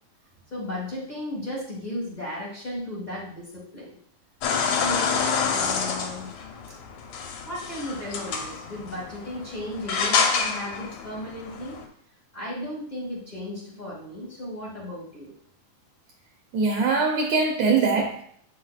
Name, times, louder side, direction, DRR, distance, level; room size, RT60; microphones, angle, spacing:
voice 1, 0.5-3.9 4.6-6.3 7.4-11.8 12.3-15.3, left 1 dB, 45° left, -5 dB, 0.5 m, -35 dB
sound 1, 4.4-11.8, left 5 dB, 75° left, 2.2 m, -28 dB
voice 2, 16.5-18.2, right 4 dB, 75° right, 1 dB, 1.8 m, -22 dB
8.4 x 5.7 x 2.3 m, 0.62 s
omnidirectional pair, 3.7 m